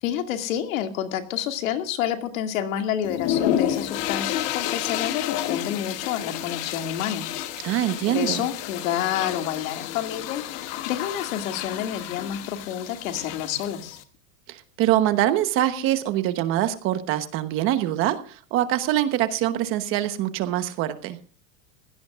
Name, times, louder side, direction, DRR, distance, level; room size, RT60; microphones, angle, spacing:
voice 1, 0.0-7.2 8.1-14.0, left 10 dB, 70° left, 6 dB, 2.5 m, -29 dB
sound 1, 3.0-14.0, left 11 dB, 35° left, 1.2 m, -30 dB
voice 2, 7.6-8.4 14.5-21.2, right 13 dB, 30° right, 10 dB, 1.1 m, -24 dB
22.5 x 17.0 x 2.5 m, 0.41 s
supercardioid pair, 165°, 42 cm